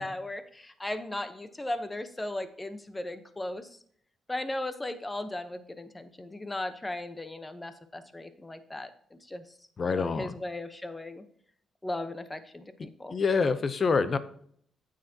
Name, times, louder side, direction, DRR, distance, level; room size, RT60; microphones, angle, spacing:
voice 1, 0.0-3.7 4.3-9.4 9.8-11.2 11.8-13.1, left 1 dB, 15° left, 11 dB, 0.9 m, -37 dB
voice 2, 9.8-10.3 13.1-14.2, left 4 dB, 40° left, 13 dB, 0.7 m, -26 dB
9.0 x 7.6 x 2.9 m, 0.62 s
cardioid pair, 90°, 0 cm